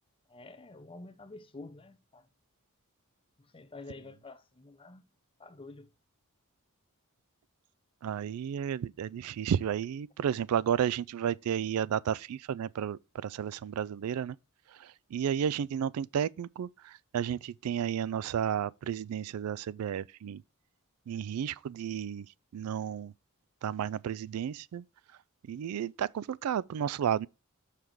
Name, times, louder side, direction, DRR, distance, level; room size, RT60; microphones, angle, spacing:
voice 1, 0.3-2.2 3.5-5.0 5.4-5.9, left 3 dB, 25° left, 0.7 m, -48 dB
voice 2, 8.0-14.4 14.8-20.4 21.1-22.3 22.5-23.1 23.6-24.8 25.5-27.3, right 8 dB, 80° right, 0.3 m, -32 dB
6.6 x 5.8 x 4.6 m
head